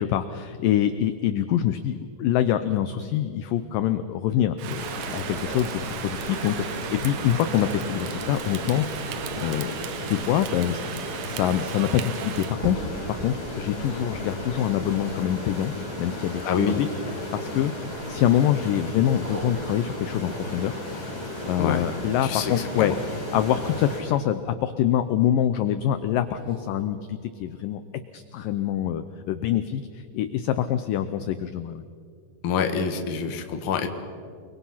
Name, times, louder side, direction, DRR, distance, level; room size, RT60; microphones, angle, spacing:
voice 1, 0.0-8.9 9.4-16.9 17.3-17.7 18.1-20.8 21.5-22.9 23.3-27.8 28.1-31.8, left 11 dB, 80° left, 11 dB, 2.0 m, -25 dB
Rain, 4.6-12.6, right 10 dB, 90° right, 1.7 m, -36 dB
sound 1, 4.7-24.0, left 1 dB, 20° left, 7.8 m, -35 dB
sound 2, 12.6-17.2 17.9-18.5 19.2-22.2 23.4-25.5 26.2-27.6 28.1-28.2, right 1 dB, 25° right, 2.3 m, -43 dB
voice 2, 16.4-16.8 21.6-21.8 22.2-23.0 32.4-33.9, left 6 dB, 50° left, 5 dB, 1.6 m, -26 dB
29.5 x 22.0 x 5.8 m, 2.2 s
omnidirectional pair, 4.7 m